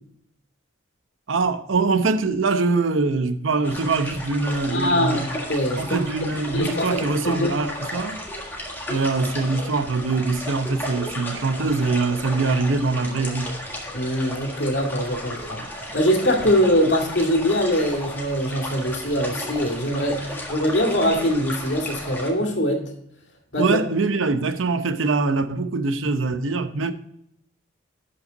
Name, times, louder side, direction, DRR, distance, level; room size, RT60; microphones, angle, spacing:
voice 1, 1.3-5.3 5.8-8.2 8.9-13.5 23.6-26.9, right 3 dB, 90° right, 0.8 m, -23 dB
sound 1, 3.6-22.3, left 1 dB, 10° left, 1.6 m, -34 dB
voice 2, 4.7-5.8 6.2-7.5 13.9-15.6 15.9-22.8 23.5-23.8, equal, 65° left, 2.1 m, -23 dB
12.0 x 5.7 x 3.9 m
head